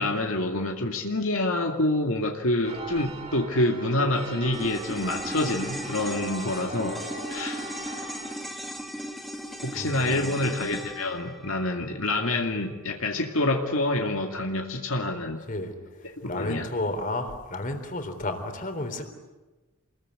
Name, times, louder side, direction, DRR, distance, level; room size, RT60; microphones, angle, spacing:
voice 1, 0.0-7.0 7.3-7.6 9.6-15.4 16.2-16.7, left 1 dB, 70° left, 2 dB, 2.2 m, -27 dB
sound 1, 2.6-8.3, right 2 dB, 25° right, 2.8 m, -39 dB
sound 2, 4.5-13.0 13.3-13.4, equal, ahead, 2.7 m, -37 dB
voice 2, 9.7-10.4 15.5-15.7 16.0-19.1, left 2 dB, 35° left, 7 dB, 3.7 m, -32 dB
28.5 x 21.5 x 9.7 m, 1.2 s
head